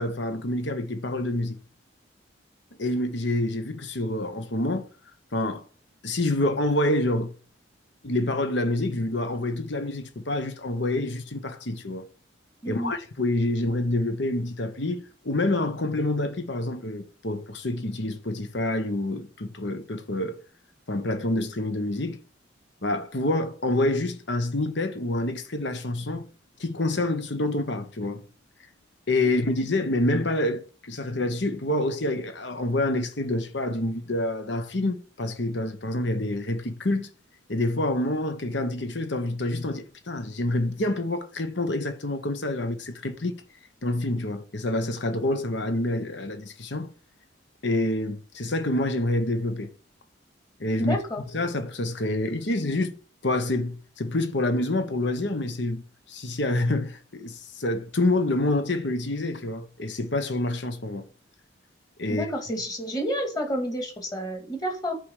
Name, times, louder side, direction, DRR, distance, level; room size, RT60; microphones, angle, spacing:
voice 1, 0.0-1.6 2.8-4.9 5.3-5.6 6.0-7.3 8.0-12.1 12.6-20.4 20.9-22.2 22.8-26.3 26.6-28.2 29.1-37.1 37.5-43.4 43.8-46.9 47.6-49.7 50.6-51.0 51.3-52.9 53.2-55.8 56.1-61.1 62.0-62.3, left 1 dB, 65° left, 1.1 m, -27 dB
voice 2, 50.8-51.2 62.1-65.0, equal, 20° left, 2.0 m, -30 dB
9.4 x 4.8 x 6.6 m
head